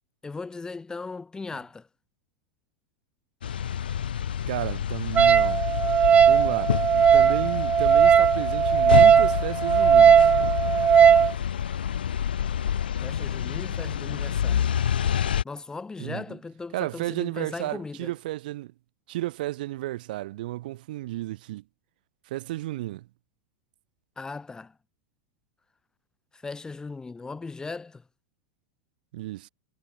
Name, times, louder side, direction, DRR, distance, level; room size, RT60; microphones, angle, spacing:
voice 1, 0.2-1.9 13.0-14.7 15.4-18.1 24.2-24.8 26.3-28.0, left 4 dB, 15° left, 5.5 m, -38 dB
sound 1, 3.4-15.4, left 9 dB, 80° left, 6.3 m, -28 dB
voice 2, 4.5-5.6 6.3-6.8 7.1-10.3 16.0-16.4 16.7-18.7 19.1-21.6 22.3-23.1 29.1-29.5, right 16 dB, 65° right, 4.2 m, -33 dB
Wind instrument woodwind instrument, 5.2-11.3, right 8 dB, 25° right, 0.7 m, -18 dB
hypercardioid pair, 90°, 5 cm